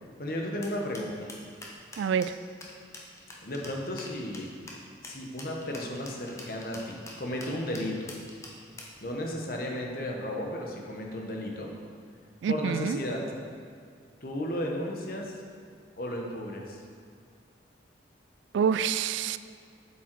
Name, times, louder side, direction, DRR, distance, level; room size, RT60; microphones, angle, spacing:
voice 1, 0.2-1.3 3.4-4.5 5.0-8.1 9.0-11.7 12.5-13.2 14.2-15.4 16.0-16.8, left 1 dB, 50° left, 0 dB, 1.1 m, -34 dB
sound 1, 0.6-9.0, left 2 dB, 15° left, 0.9 m, -45 dB
voice 2, 2.0-2.4 12.4-13.0 18.5-19.4, right 7 dB, 85° right, 14 dB, 0.3 m, -27 dB
7.8 x 7.2 x 4.6 m, 2.2 s
head